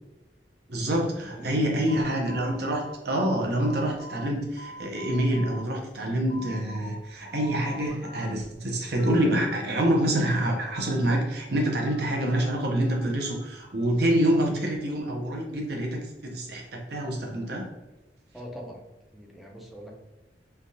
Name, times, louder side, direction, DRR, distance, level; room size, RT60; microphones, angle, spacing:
voice 1, 0.7-17.7, right 1 dB, 65° right, 0 dB, 0.7 m, -26 dB
voice 2, 1.3-2.1 18.3-18.8 19.1-19.9, equal, ahead, -1 dB, 0.5 m, -41 dB
sound 1, 1.9-4.3 4.6-5.7 6.0-7.0 7.3-8.3 8.7-9.7 9.9-11.2 11.7-13.8, equal, 60° left, 0.5 m, -45 dB
3.3 x 2.3 x 2.7 m, 1.0 s
head